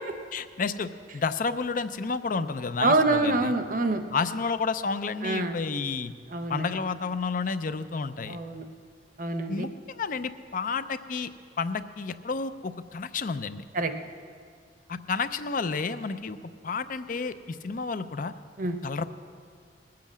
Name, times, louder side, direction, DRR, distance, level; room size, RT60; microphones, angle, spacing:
voice 1, 0.3-3.5 4.1-6.1 6.5-8.4 9.5-11.3 11.6-13.6 14.9-16.4 16.6-18.3 18.8-19.1, left 4 dB, 45° left, 12 dB, 0.5 m, -31 dB
voice 2, 2.8-4.0 5.2-5.6 6.3-6.7 8.3-8.7 9.2-9.7 13.7-13.9 18.6-18.8, right 2 dB, 45° right, 7 dB, 0.8 m, -26 dB
19.0 x 7.7 x 7.3 m, 2.1 s
head